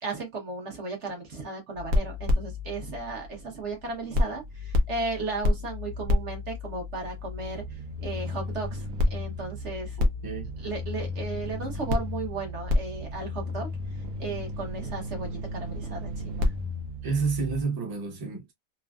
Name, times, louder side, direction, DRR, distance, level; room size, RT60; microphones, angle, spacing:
voice 1, 0.0-10.0 10.6-13.7 14.2-16.5, right 3 dB, 55° right, 1.3 m, -35 dB
sound 1, 1.8-3.8 4.1-17.6, left 2 dB, 90° right, 1.2 m, -30 dB
voice 2, 10.0-10.5 17.0-18.5, right 4 dB, 20° right, 0.7 m, -30 dB
3.1 x 2.4 x 2.3 m
omnidirectional pair, 1.5 m